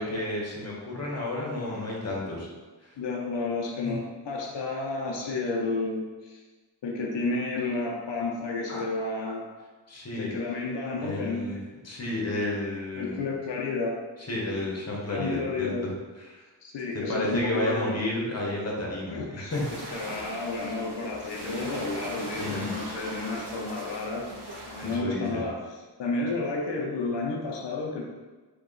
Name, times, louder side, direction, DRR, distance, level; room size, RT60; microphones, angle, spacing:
voice 1, 0.0-2.5 2.8-3.0 3.8-4.0 8.7-8.8 9.9-10.3 11.0-11.6 11.8-13.2 14.3-15.9 16.3-16.4 16.9-20.0 22.4-22.7 24.8-25.5, left 1 dB, 35° left, -3 dB, 1.0 m, -32 dB
voice 2, 3.0-6.4 6.8-9.4 10.1-11.5 13.0-14.0 15.1-15.8 16.6-18.0 19.1-25.6 26.0-28.0, left 3 dB, 90° left, -2 dB, 0.6 m, -31 dB
sound 1, 19.5-25.0, right 1 dB, 70° right, 1.0 m, -39 dB
2.9 x 2.8 x 3.8 m, 1.3 s
wide cardioid pair, 80°, 42 cm